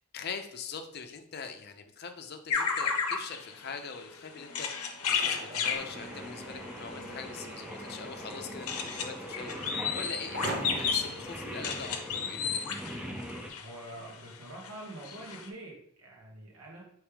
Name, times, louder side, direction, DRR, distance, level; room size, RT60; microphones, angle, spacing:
voice 1, 0.0-12.5, left 5 dB, 45° left, 6 dB, 0.5 m, -43 dB
sound 1, 2.5-14.2 14.6-14.7 15.0-15.5, left 6 dB, 90° left, 0.6 m, -34 dB
sound 2, 4.3-11.1, right 1 dB, 50° right, 0.7 m, -44 dB
Singing, 5.7-13.5, equal, 5° right, 0.4 m, -42 dB
voice 2, 13.6-16.8, right 1 dB, 80° right, -3 dB, 1.3 m, -45 dB
3.4 x 3.1 x 4.6 m, 0.71 s
head